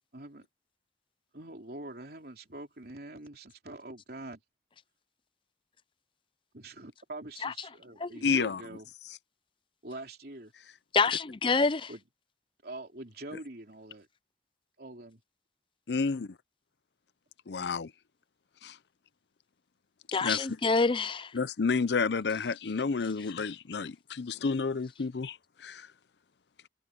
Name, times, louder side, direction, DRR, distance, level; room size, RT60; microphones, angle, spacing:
voice 1, 0.1-0.5 1.3-4.4 6.5-8.9 9.8-10.5 11.9-12.0 12.6-14.1 14.8-15.2, right 2 dB, 60° right, 3.6 m, -44 dB
voice 2, 8.2-8.6 15.9-16.3 17.5-17.9 18.6-18.8 20.2-20.5 21.3-25.9, left 4 dB, 70° left, 0.6 m, -30 dB
voice 3, 10.9-11.9 20.1-21.3, left 4 dB, 30° left, 0.5 m, -27 dB
head